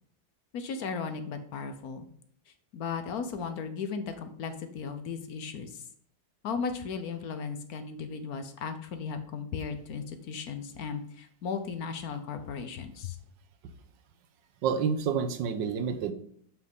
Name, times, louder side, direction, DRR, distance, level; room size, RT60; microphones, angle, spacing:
voice 1, 0.5-2.1 2.7-5.8 6.4-13.2, left 5 dB, 60° left, 9 dB, 1.1 m, -36 dB
voice 2, 14.6-16.1, right 6 dB, 80° right, 8 dB, 1.5 m, -28 dB
7.5 x 6.2 x 3.6 m, 0.64 s
omnidirectional pair, 2.0 m